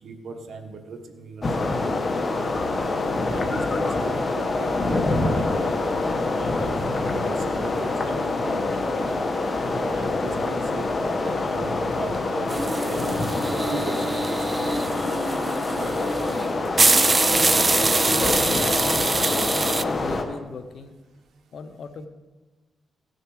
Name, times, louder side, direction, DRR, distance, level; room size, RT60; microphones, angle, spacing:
voice 1, 0.0-2.6 3.3-5.8 6.3-6.8 7.1-9.2 9.9-16.0, right 4 dB, 75° right, 4 dB, 1.3 m, -39 dB
sound 1, 1.4-20.2, left 3 dB, 35° left, 1.3 m, -25 dB
sound 2, 12.5-19.8, right 3 dB, 30° right, 0.4 m, -24 dB
voice 2, 18.1-20.9 21.5-22.1, left 5 dB, 65° left, 10 dB, 0.8 m, -36 dB
16.5 x 6.5 x 4.9 m, 1.2 s
cardioid pair, 85°, 0 cm